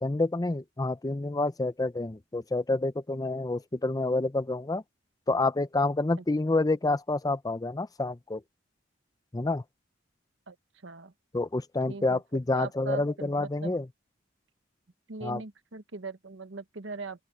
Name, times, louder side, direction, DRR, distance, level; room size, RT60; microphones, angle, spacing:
voice 1, 0.0-4.8 5.3-8.4 9.3-9.6 11.3-13.8 15.2-15.4, left 2 dB, 20° left, 0.6 m, -28 dB
voice 2, 10.5-11.1 11.9-12.2 12.5-13.8 15.1-17.2, right 4 dB, 90° right, 1.3 m, -40 dB
open air
head